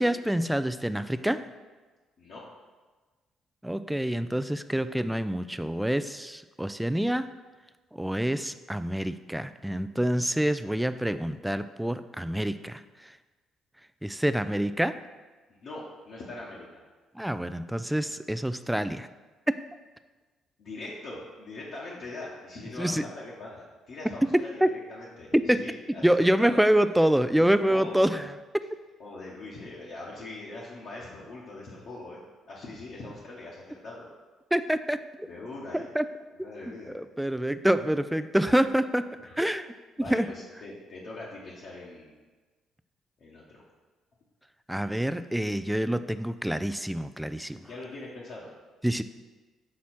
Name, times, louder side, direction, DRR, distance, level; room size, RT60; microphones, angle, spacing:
voice 1, 0.0-1.4 3.6-7.3 7.9-12.8 14.0-15.0 17.2-19.1 19.5-19.6 22.8-23.0 24.6-24.7 25.5-25.6 26.0-28.6 34.5-35.3 35.7-36.1 36.9-39.1 39.4-39.7 40.1-40.3 44.7-47.6 48.8-49.0, right 1 dB, 5° right, 12 dB, 0.3 m, -26 dB
voice 2, 15.6-16.7 20.6-25.3 25.6-26.6 27.7-28.0 29.0-32.2 32.5-34.1 35.2-35.9 36.4-37.0 39.2-39.3 40.0-42.1 43.2-43.6 47.6-48.5, left 2 dB, 55° left, -7 dB, 1.1 m, -41 dB
6.1 x 4.1 x 4.3 m, 1.3 s
figure-of-eight pair, 45°, 0 cm